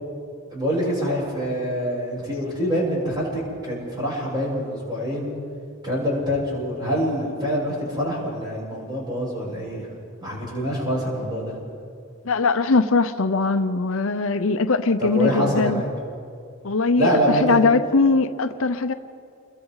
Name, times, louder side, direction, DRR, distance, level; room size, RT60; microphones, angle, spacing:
voice 1, 0.5-5.3 5.8-9.9 10.2-11.6 15.0-15.9 17.0-17.6, equal, 20° right, -5 dB, 7.4 m, -25 dB
voice 2, 12.3-15.8 16.6-17.1 17.4-18.9, left 3 dB, 70° left, 9 dB, 0.7 m, -21 dB
29.5 x 22.5 x 4.1 m, 2.3 s
head